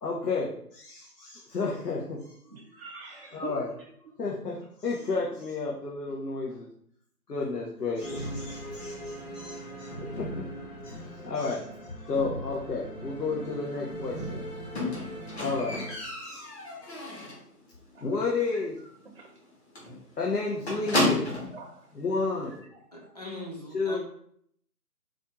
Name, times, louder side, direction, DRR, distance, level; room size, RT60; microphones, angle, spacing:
voice 1, 0.0-2.4 3.3-3.7 4.2-6.7 7.3-10.5 10.8-11.7 12.0-14.5 15.4-15.8 16.2-16.5 16.8-17.3 18.0-18.8 20.2-21.3 21.9-22.7 23.7-24.0, left 4 dB, 80° left, -3 dB, 1.0 m, -32 dB
voice 2, 2.5-4.1 4.5-4.6 17.9-18.0 19.1-19.3 21.5-21.9 23.0-23.1, right 4 dB, 45° right, 1 dB, 0.7 m, -44 dB
sound 1, 8.0-15.9, right 1 dB, 60° left, 1.4 m, -39 dB
Squeak, 14.8-17.5 17.9-18.3 18.5-18.6 19.0-19.1 19.4-19.5 19.8-21.6 22.4-22.5, left 2 dB, 40° left, 1.2 m, -31 dB
voice 3, 22.9-24.0, left 1 dB, 25° left, -2 dB, 0.7 m, -40 dB
4.2 x 2.4 x 3.0 m, 0.65 s
figure-of-eight pair, 160°, 47 cm